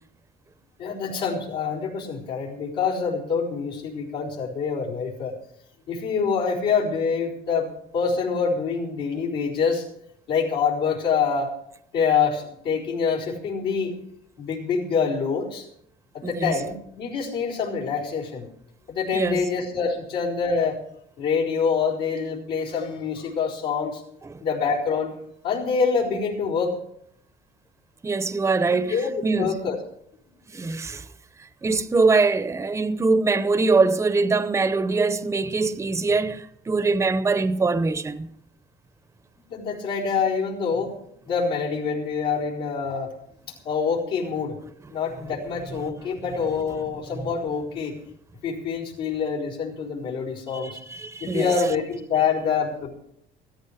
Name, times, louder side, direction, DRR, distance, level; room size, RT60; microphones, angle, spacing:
voice 1, 0.8-5.3 5.9-9.9 10.3-11.5 11.9-13.9 14.4-15.7 16.1-18.5 18.9-20.8 21.2-24.0 24.4-25.1 25.4-26.8 28.6-29.8 39.5-40.9 41.2-43.1 43.4-44.6 44.9-48.0 48.4-50.7 51.2-52.9, left 5 dB, 80° left, 4.3 m, -26 dB
voice 2, 16.2-16.5 19.1-19.4 24.2-24.4 28.0-29.6 30.5-31.1 31.4-38.3 47.1-47.3 50.5-51.6, right 3 dB, 15° right, 0.7 m, -23 dB
14.5 x 14.0 x 5.0 m
cardioid pair, 110°, 17 cm